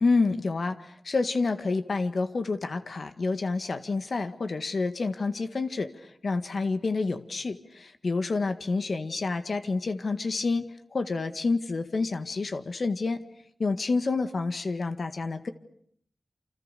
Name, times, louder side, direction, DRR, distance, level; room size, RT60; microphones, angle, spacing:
voice 1, 0.0-13.2 13.6-15.5, left 3 dB, 70° left, 9 dB, 1.7 m, -28 dB
28.5 x 26.5 x 6.8 m, 0.66 s
wide cardioid pair, 60°, 0 cm